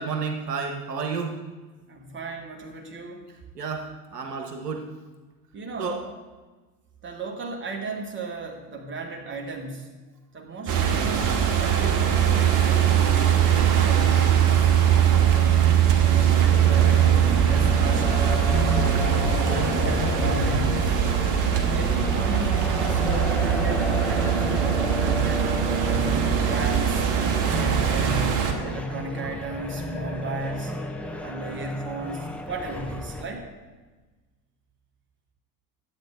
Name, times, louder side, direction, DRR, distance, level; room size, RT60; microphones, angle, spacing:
voice 1, 0.0-1.3 3.5-4.9 5.8-6.0 19.5-19.7, right 5 dB, 80° right, 3 dB, 0.9 m, -31 dB
voice 2, 1.9-3.3 5.5-6.0 7.0-9.9 10.3-11.2 11.6-15.7 16.0-18.2 18.6-18.9 19.4-21.0 21.5-25.6 25.8-27.1 27.5-30.8 31.2-33.5, right 2 dB, 25° right, 1 dB, 1.7 m, -35 dB
sound 1, 10.7-28.5, right 8 dB, 40° right, 1.2 m, -21 dB
sound 2, 16.5-33.2, left 2 dB, 5° left, 0.4 m, -33 dB
10.5 x 8.0 x 3.6 m, 1.3 s
figure-of-eight pair, 65°, 47 cm